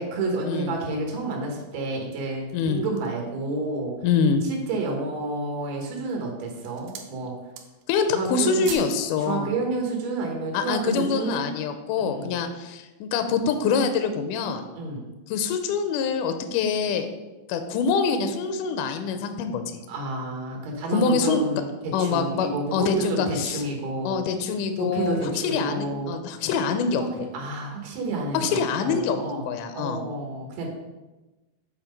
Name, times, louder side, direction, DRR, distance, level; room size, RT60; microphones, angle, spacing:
voice 1, 0.0-3.9 4.4-7.3 8.1-8.7 9.2-11.4 12.0-12.3 14.7-15.0 19.9-24.2 24.8-26.1 27.0-29.5 29.7-30.7, right 2 dB, 60° right, 0 dB, 2.0 m, -30 dB
sound 1, 2.3-3.3 3.9-4.0 4.4-5.0 5.7-6.1 6.4-7.2 7.4-8.0 8.2-9.0 9.3-9.5, right 7 dB, 75° right, 2.1 m, -40 dB
voice 2, 2.5-2.8 4.0-4.4 7.9-9.5 10.5-14.6 15.3-17.1 17.5-19.8 20.9-21.4 21.9-23.6 24.1-27.3 28.3-30.0, left 5 dB, 85° left, 8 dB, 1.9 m, -25 dB
7.2 x 4.3 x 5.2 m, 1.1 s
omnidirectional pair, 4.3 m